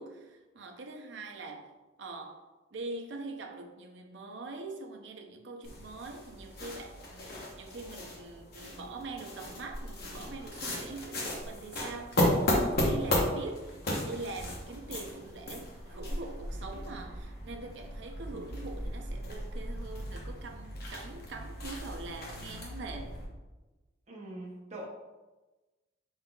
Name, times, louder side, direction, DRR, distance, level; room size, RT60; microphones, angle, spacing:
voice 1, 0.0-1.7 2.0-2.4 2.7-23.2, right 3 dB, 65° right, 0.5 m, -43 dB
sound 1, 5.6-23.3, left 1 dB, 55° left, 1.0 m, -35 dB
voice 2, 24.1-24.9, right 1 dB, 35° right, 0.8 m, -42 dB
5.0 x 3.9 x 2.3 m
head